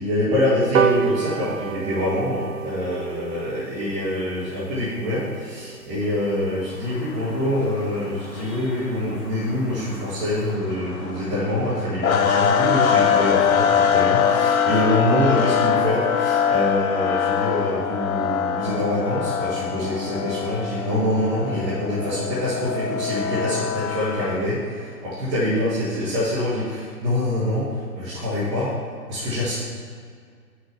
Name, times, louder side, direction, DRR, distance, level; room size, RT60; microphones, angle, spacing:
voice 1, 0.0-24.7 25.3-28.7 29.1-29.6, left 1 dB, 25° right, -10 dB, 1.9 m, -25 dB
sound 1, 0.7-7.5 7.9-8.0 8.3-8.4 8.7-8.8 9.1-9.2 9.5-9.8 10.2-10.3, right 7 dB, 50° right, 0.5 m, -29 dB
Vehicle horn car horn honking / Traffic noise roadway noise, 6.0-13.4, left 3 dB, 35° left, 1.4 m, -41 dB
sound 2, 12.0-24.4, left 7 dB, 55° left, 0.7 m, -22 dB
6.1 x 5.4 x 7.0 m, 2.1 s
hypercardioid pair, 140°, 50 cm